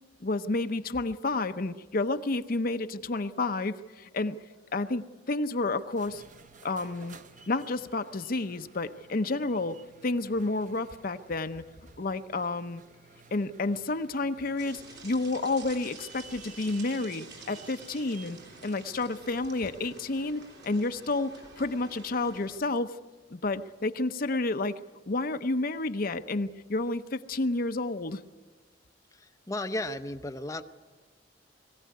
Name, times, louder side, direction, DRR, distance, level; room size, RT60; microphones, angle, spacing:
voice 1, 0.2-4.4 4.7-6.2 6.6-7.2 7.5-11.6 12.0-12.8 13.3-22.9 23.3-24.8 25.1-28.2, left 2 dB, 50° left, 9 dB, 0.8 m, -30 dB
sound 1, 5.8-20.0, right 5 dB, 45° right, 1.0 m, -55 dB
sound 2, 14.6-22.6, right 3 dB, 65° right, 3.2 m, -49 dB
voice 2, 29.1-30.6, left 1 dB, 15° left, 7 dB, 0.7 m, -34 dB
22.0 x 16.0 x 9.5 m, 1.3 s
head